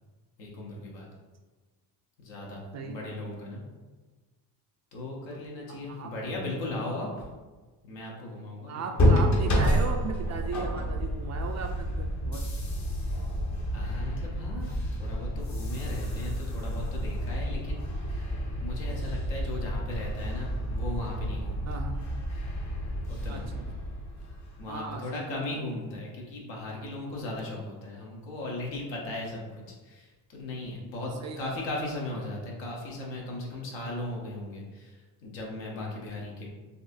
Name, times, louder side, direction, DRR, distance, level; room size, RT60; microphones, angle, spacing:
voice 1, 0.4-1.1 2.2-3.6 4.9-7.3 7.8-9.0 13.0-13.1 13.7-14.7 15.0-18.1 18.6-21.8 23.1-23.4 24.6-36.5, left 2 dB, 75° left, -2 dB, 1.1 m, -37 dB
voice 2, 2.7-3.2 5.3-5.4 5.7-6.1 8.7-12.4 21.7-22.0 23.3-23.6 24.7-25.4 31.2-31.6, right 4 dB, 40° right, 4 dB, 0.4 m, -37 dB
sound 1, 9.0-24.7, equal, 40° left, 0.8 m, -29 dB
4.0 x 2.6 x 2.6 m, 1.3 s
supercardioid pair, 90°, 45 cm